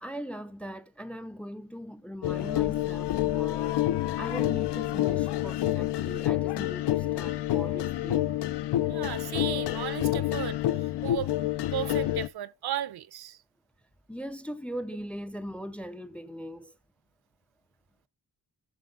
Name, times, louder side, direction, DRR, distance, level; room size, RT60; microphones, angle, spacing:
voice 1, 0.0-3.8 4.2-8.3 14.1-16.7, equal, 5° left, 0.5 m, -40 dB
sound 1, 2.2-12.3, left 14 dB, 80° left, 0.7 m, -28 dB
voice 2, 8.9-11.3 11.7-13.4, right 11 dB, 70° right, 0.7 m, -35 dB
12.0 x 5.8 x 3.7 m
wide cardioid pair, 170°, 40 cm